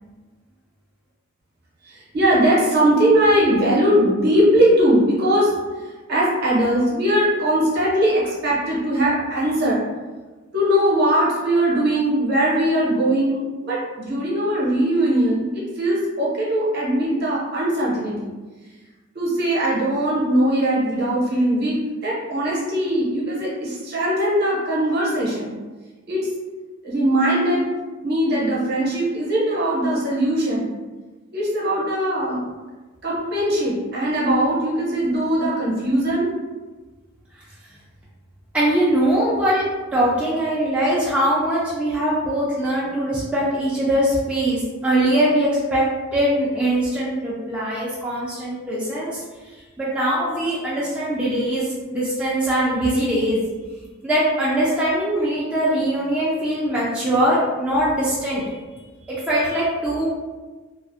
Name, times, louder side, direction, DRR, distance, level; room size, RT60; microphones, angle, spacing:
voice 1, 1.9-5.5 6.1-9.8 10.5-18.3 19.1-25.5 26.1-26.3 26.8-27.7 28.0-30.7 31.3-32.4 33.0-36.3, right 1 dB, 50° right, -5 dB, 0.7 m, -20 dB
voice 2, 38.5-39.7 39.9-45.8 46.1-49.2 49.8-53.4 54.0-58.4 59.0-60.1, right 1 dB, 5° right, -9 dB, 0.3 m, -21 dB
2.4 x 2.0 x 2.5 m, 1.3 s
head